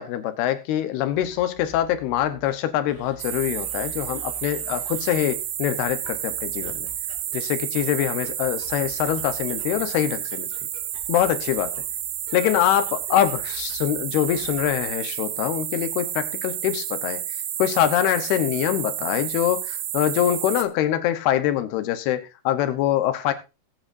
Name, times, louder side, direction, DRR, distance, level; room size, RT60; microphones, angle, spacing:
voice 1, 0.0-6.9 7.3-10.5 11.1-11.7 12.3-17.2 17.6-23.3, left 11 dB, 85° left, 3.0 m, -24 dB
sound 1, 1.0-15.0, right 1 dB, 50° left, 4.6 m, -49 dB
sound 2, 3.2-20.6, right 11 dB, 75° right, 1.6 m, -31 dB
20.5 x 8.2 x 2.6 m
omnidirectional pair, 4.5 m